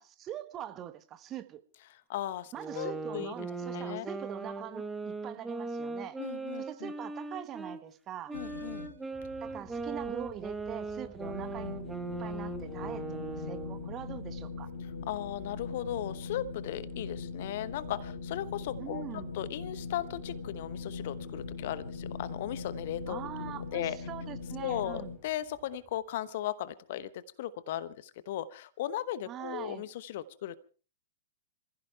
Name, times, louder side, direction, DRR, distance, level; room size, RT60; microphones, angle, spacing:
voice 1, 0.0-1.6 2.5-6.2 6.6-8.3 9.4-11.8 12.2-14.7 18.8-19.3 23.1-25.1 29.3-29.8, right 11 dB, 25° right, 11 dB, 1.3 m, -43 dB
voice 2, 1.9-3.3 3.7-4.1 6.2-6.9 8.3-8.9 15.1-19.0 19.3-23.2 23.7-24.0 24.6-30.6, left 12 dB, 50° left, 16 dB, 1.0 m, -37 dB
sound 1, 2.6-7.8 8.3-13.9, right 3 dB, 10° right, 1.7 m, -39 dB
sound 2, 8.3-9.0 11.2-25.2, left 4 dB, 75° left, 3.6 m, -41 dB
sound 3, 9.1-26.0, right 2 dB, 10° left, 3.9 m, -57 dB
27.5 x 15.5 x 3.4 m, 0.38 s
figure-of-eight pair, 100°, 0 cm